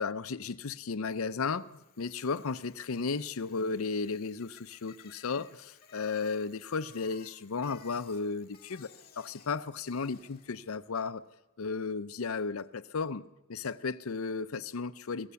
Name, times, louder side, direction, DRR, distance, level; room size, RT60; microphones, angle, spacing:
voice 1, 0.0-1.7 2.0-8.9 9.2-11.2 11.6-13.2 13.5-15.3, left 4 dB, 80° left, 0.6 m, -34 dB
Bicycle, 1.4-10.8, left 6 dB, 45° left, 2.0 m, -58 dB
23.5 x 16.0 x 7.0 m
head